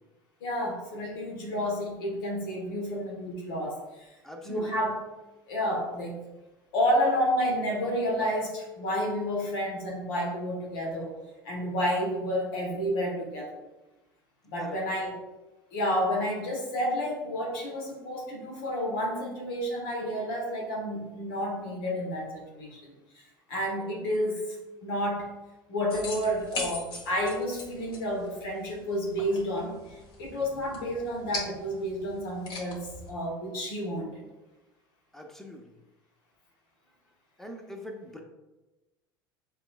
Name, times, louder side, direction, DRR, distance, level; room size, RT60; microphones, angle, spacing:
voice 1, 0.4-4.1 4.4-5.0 5.5-6.2 6.7-11.1 11.4-13.6 14.4-15.1 15.7-23.2 23.5-25.3 25.7-34.2, equal, 70° left, -2 dB, 1.1 m, -30 dB
voice 2, 4.2-4.7 14.6-14.8 35.1-35.6 37.4-38.2, left 1 dB, 5° left, 3 dB, 0.8 m, -42 dB
sound 1, 25.9-33.1, left 2 dB, 40° left, 1.5 m, -41 dB
6.7 x 3.2 x 2.3 m, 1.1 s
figure-of-eight pair, 70°, 12 cm